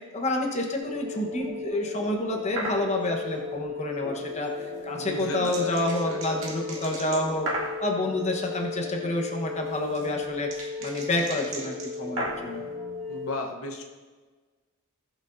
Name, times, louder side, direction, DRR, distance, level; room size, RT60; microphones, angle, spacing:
voice 1, 0.1-7.5 7.8-12.7, left 1 dB, 30° left, 1 dB, 1.1 m, -29 dB
sound 1, 0.8-13.2, left 4 dB, 10° left, 2.8 m, -36 dB
sound 2, 2.6-2.8 4.7-7.8 9.4-12.6, right 2 dB, 60° right, 2.3 m, -35 dB
voice 2, 5.0-6.5 13.1-13.8, left 2 dB, 70° left, 3 dB, 1.0 m, -35 dB
18.5 x 6.2 x 2.6 m, 1.4 s
head